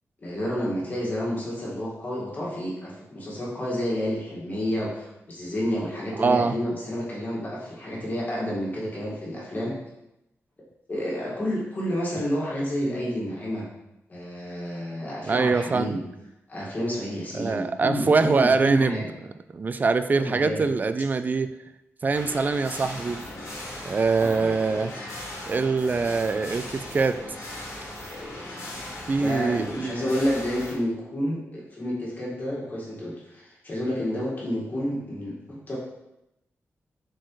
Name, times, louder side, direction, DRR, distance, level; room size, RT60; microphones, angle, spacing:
voice 1, 0.2-9.8 10.9-13.7 14.1-16.0 16.5-19.1 20.2-20.7 24.2-24.7 29.2-35.8, equal, 35° left, -5 dB, 1.9 m, -30 dB
voice 2, 6.2-6.5 15.3-15.9 17.3-19.0 19.5-21.6 22.0-23.2 23.9-24.9 25.5-27.2 29.1-30.0, right 4 dB, 35° right, 11 dB, 0.4 m, -23 dB
sound 1, 22.1-30.7, left 1 dB, 70° left, 1.8 m, -38 dB
7.5 x 4.6 x 3.2 m, 0.89 s
wide cardioid pair, 135°, 5 cm